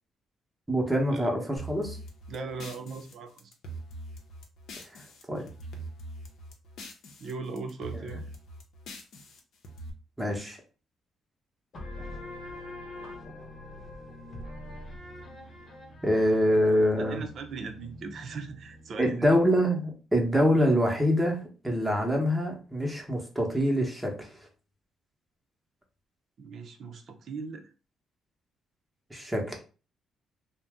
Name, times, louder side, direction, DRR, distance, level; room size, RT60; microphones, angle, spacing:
voice 1, 0.7-2.0 4.9-5.0 5.3-5.4 10.2-10.6 16.0-17.2 19.0-24.3 29.1-29.6, equal, 10° right, 0.9 m, -25 dB
sound 1, 1.6-5.2 5.5-7.3 7.6-9.9, right 1 dB, 75° left, 0.6 m, -43 dB
voice 2, 2.3-3.5 7.2-8.2 17.1-19.4 26.4-27.7, right 4 dB, 60° right, 0.5 m, -39 dB
sound 2, 11.7-19.0, left 1 dB, 55° left, 1.0 m, -44 dB
2.6 x 2.1 x 3.4 m
cardioid pair, 90°, 0 cm